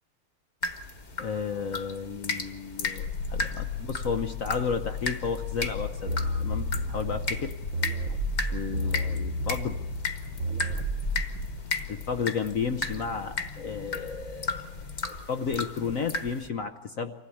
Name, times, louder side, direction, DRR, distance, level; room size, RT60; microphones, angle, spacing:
sound 1, 0.6-16.5, left 4 dB, 35° left, 1.4 m, -36 dB
voice 1, 1.2-7.5 8.5-9.8 11.9-14.7 15.0-17.1, left 6 dB, 60° left, 8 dB, 0.9 m, -33 dB
sound 2, 2.8-15.2 15.5-15.6, left 5 dB, 75° left, 2.5 m, -38 dB
sound 3, 6.1-11.4, equal, 45° right, 1.2 m, -32 dB
25.0 x 16.5 x 8.6 m, 1.2 s
omnidirectional pair, 2.3 m